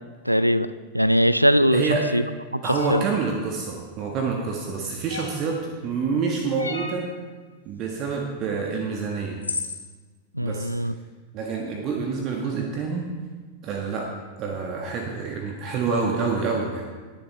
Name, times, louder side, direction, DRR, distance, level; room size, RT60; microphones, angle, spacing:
voice 1, 0.3-0.7 0.9-2.2 2.5-2.6 2.9-3.0 10.3-10.9, equal, 90° right, 15 dB, 0.4 m, -20 dB
voice 2, 1.7-2.1 2.6-7.0 7.6-9.4 10.4-10.7 11.3-13.0 13.6-14.1 14.4-16.9, right 5 dB, 35° right, 0 dB, 1.5 m, -27 dB
sound 1, 2.7-3.0 5.1-5.5 6.6-7.0 8.7-8.8 9.4-9.8, left 3 dB, 80° left, 1.3 m, -32 dB
19.5 x 7.2 x 3.3 m, 1.4 s
figure-of-eight pair, 90°, 0 cm